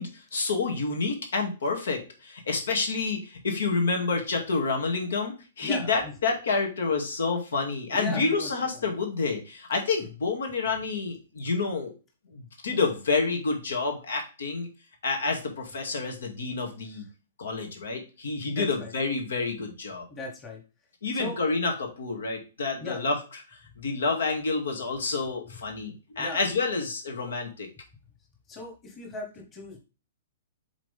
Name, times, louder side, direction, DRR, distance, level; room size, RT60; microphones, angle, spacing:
voice 1, 0.0-11.9 12.3-14.7 15.0-17.0 17.4-20.0 21.0-23.2 23.8-27.7, left 4 dB, 90° left, 3 dB, 2.3 m, -28 dB
voice 2, 5.6-6.1 7.9-8.9 18.5-18.9 20.1-20.6 21.1-21.4 22.8-23.0 26.2-26.4 28.5-29.8, left 2 dB, 15° left, 1 dB, 1.2 m, -37 dB
7.5 x 3.9 x 3.4 m, 0.32 s
hypercardioid pair, 170°, 0 cm